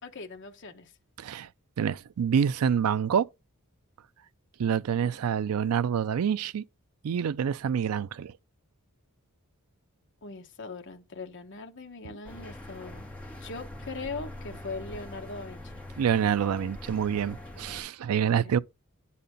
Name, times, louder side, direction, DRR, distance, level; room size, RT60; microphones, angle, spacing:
voice 1, 0.0-0.9 5.0-5.2 10.2-13.1 13.4-15.8 18.4-18.6, left 3 dB, 55° left, 1.2 m, -40 dB
voice 2, 1.2-1.5 1.8-3.3 4.6-6.6 7.0-8.3 16.0-18.6, right 8 dB, 80° right, 0.4 m, -27 dB
sound 1, 12.2-17.8, left 1 dB, 5° left, 2.1 m, -43 dB
9.9 x 4.2 x 5.1 m
head